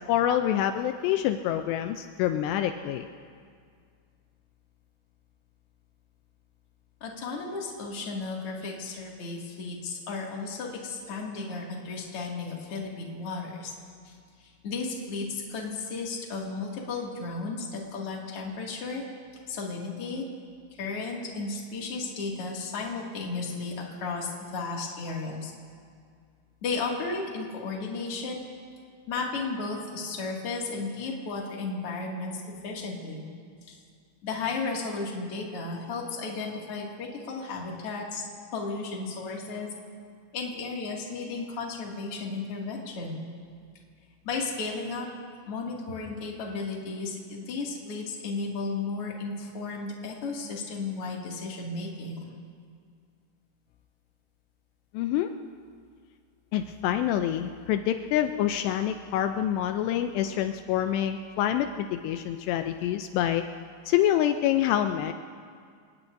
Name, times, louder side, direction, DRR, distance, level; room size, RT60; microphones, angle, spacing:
voice 1, 0.0-3.1 54.9-55.3 56.5-63.5 63.9-65.1, left 11 dB, 90° left, 7 dB, 2.4 m, -26 dB
voice 2, 7.0-13.7 14.0-14.1 14.4-19.0 19.5-20.2 20.8-25.5 26.6-28.4 29.1-33.2 33.7-33.8 34.2-38.2 38.5-39.7 40.3-43.2 44.2-45.1 45.5-52.3, left 3 dB, 40° left, -2 dB, 2.2 m, -34 dB
28.5 x 18.5 x 2.6 m, 2.1 s
omnidirectional pair, 5.4 m